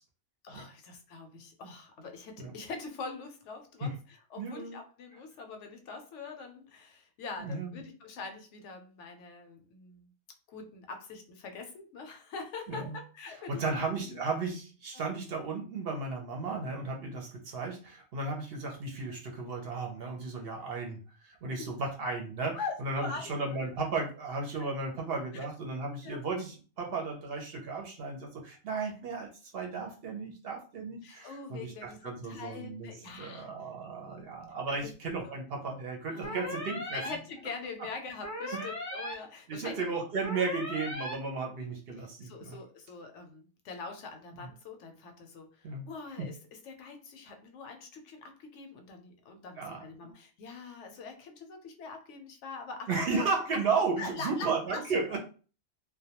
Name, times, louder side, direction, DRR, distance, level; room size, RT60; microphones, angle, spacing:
voice 1, 0.4-10.1 10.5-14.2 14.9-15.1 21.5-21.7 22.5-23.8 24.6-24.7 25.3-25.5 26.0-26.2 31.0-33.5 34.1-34.3 34.7-34.9 35.2-35.4 36.1-36.5 36.9-39.8 42.0-53.0 53.5-53.6 54.0-54.8 55.1-55.2, left 4 dB, 75° left, 5 dB, 0.9 m, -43 dB
voice 2, 4.4-4.8 7.4-7.8 12.7-13.0 13.5-32.9 33.2-37.2 38.5-38.7 39.5-42.6 44.3-44.5 45.6-45.9 46.2-46.3 49.6-50.1 52.9-55.2, right 4 dB, 60° right, 1 dB, 0.8 m, -34 dB
sound 1, 36.2-37.1 38.2-39.1 40.2-41.1, equal, 20° left, 0.6 m, -37 dB
2.2 x 2.2 x 2.8 m, 0.37 s
omnidirectional pair, 1.2 m